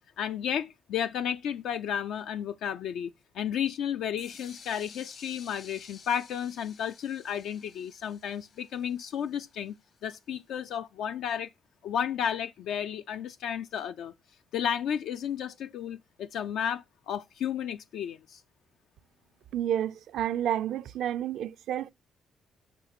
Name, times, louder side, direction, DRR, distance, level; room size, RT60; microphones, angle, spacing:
voice 1, 0.2-9.7 10.0-11.5 11.8-14.1 14.5-18.4, left 9 dB, 80° left, 0.4 m, -33 dB
sound 1, 4.2-10.0, left 5 dB, 60° left, 1.0 m, -52 dB
voice 2, 19.5-21.9, right 10 dB, 80° right, 0.4 m, -30 dB
6.8 x 6.2 x 5.9 m
cardioid pair, 90°, 0 cm